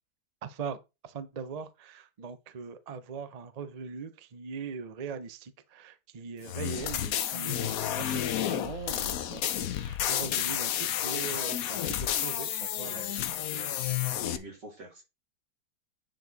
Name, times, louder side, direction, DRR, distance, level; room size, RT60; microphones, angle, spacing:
voice 1, 0.4-0.8 1.0-13.0, right 5 dB, 55° right, 0.4 m, -40 dB
sound 1, 6.4-14.4, left 11 dB, 65° left, 1.0 m, -31 dB
voice 2, 12.8-13.7 14.0-15.0, right 1 dB, 90° right, 3.8 m, -47 dB
9.0 x 4.7 x 3.9 m
omnidirectional pair, 1.8 m